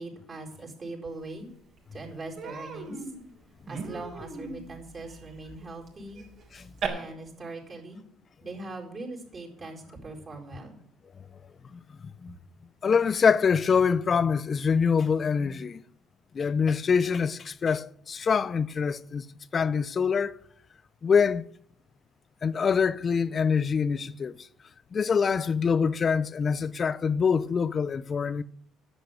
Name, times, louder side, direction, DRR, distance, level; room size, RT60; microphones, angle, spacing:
voice 1, 0.0-1.5 1.9-3.1 3.7-6.2 6.8-8.0 8.4-10.8, right 2 dB, 35° right, 4.5 m, -41 dB
Human voice, 1.4-1.5 1.8-2.0 2.4-6.9, right 5 dB, 55° right, 4.1 m, -39 dB
voice 2, 12.8-15.8 16.3-19.2 19.5-20.4 21.0-21.5 22.4-24.5 24.9-28.4, left 6 dB, 35° left, 0.6 m, -25 dB
10.5 x 8.2 x 8.9 m
cardioid pair, 95°, 0 cm